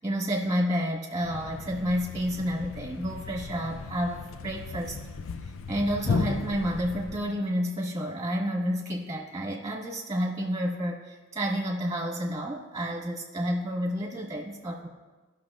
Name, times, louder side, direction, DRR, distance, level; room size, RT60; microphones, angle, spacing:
voice 1, 0.0-5.0 5.4-14.9, equal, 15° right, -1 dB, 1.5 m, -30 dB
Thump thud, 1.2-7.4, left 4 dB, 80° left, 0.4 m, -35 dB
17.5 x 6.1 x 2.5 m, 1.3 s
head